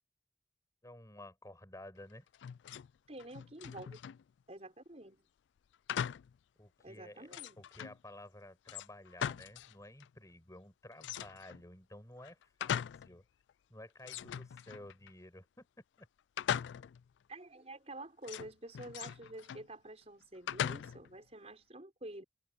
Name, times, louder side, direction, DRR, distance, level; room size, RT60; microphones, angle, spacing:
voice 1, 0.8-2.3 6.6-7.3 7.6-13.2 13.7-15.7 16.0-16.1, left 1 dB, 20° left, 7.6 m, -53 dB
sound 1, 2.3-2.9 3.2-4.2 5.9-6.4 6.8-6.9 7.3-8.0 8.7-9.7 10.0-10.1 11.0-11.6 12.2-13.1 13.5-13.6 14.0-15.1 16.4-17.1 18.2-19.7 20.5-21.2, left 9 dB, 90° left, 0.3 m, -40 dB
voice 2, 3.1-4.0 4.5-5.2 6.8-7.6 17.3-22.2, right 1 dB, 35° right, 5.4 m, -49 dB
head